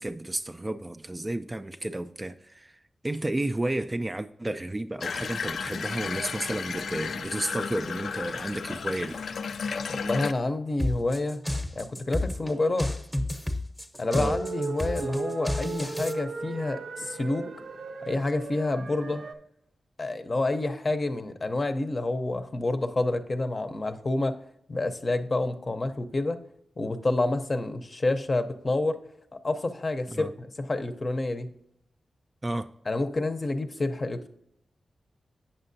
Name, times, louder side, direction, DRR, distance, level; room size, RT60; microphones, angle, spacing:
voice 1, 0.0-9.2 14.1-14.4 30.1-30.3 32.4-32.7, right 1 dB, 20° right, 0.3 m, -32 dB
Water tap faucet / Bathtub (filling or washing), 5.0-10.3, left 5 dB, 80° left, 0.3 m, -33 dB
voice 2, 10.0-11.4 11.7-12.9 14.0-17.5 18.0-19.2 20.0-24.4 24.7-26.4 26.8-29.0 29.4-31.5 32.9-34.3, left 2 dB, 35° left, 0.6 m, -28 dB
sound 1, 10.8-16.1, left 1 dB, 5° left, 0.8 m, -31 dB
sound 2, 14.1-19.3, right 4 dB, 75° right, 0.6 m, -36 dB
8.7 x 6.5 x 2.6 m
wide cardioid pair, 100°, 0 cm